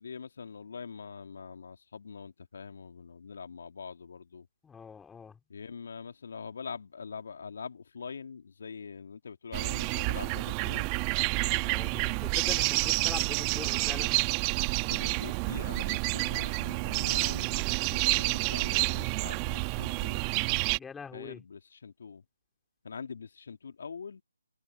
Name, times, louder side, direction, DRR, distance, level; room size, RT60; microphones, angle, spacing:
voice 1, 0.0-4.5 5.5-11.0 14.9-17.6 17.9-20.2 21.1-22.2 22.8-24.2, left 5 dB, 55° left, 2.2 m, -43 dB
voice 2, 4.6-5.4 11.6-14.2 20.8-21.4, left 6 dB, 5° left, 3.9 m, -43 dB
sound 1, 9.5-20.8, right 33 dB, 20° right, 1.3 m, -29 dB
figure-of-eight pair, 150°, 0 cm